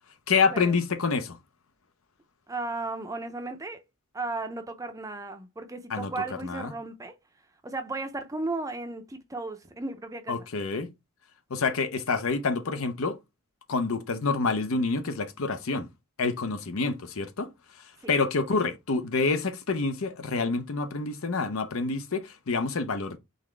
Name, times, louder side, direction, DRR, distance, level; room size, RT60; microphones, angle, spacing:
voice 1, 0.3-1.4 5.9-6.7 10.3-10.9 11.5-13.2 13.7-15.9 16.2-23.2, left 4 dB, 70° left, 0.7 m, -28 dB
voice 2, 2.5-3.8 4.1-7.1 7.6-10.3 18.0-18.1, right 3 dB, 15° right, 0.5 m, -35 dB
4.1 x 3.6 x 3.2 m
head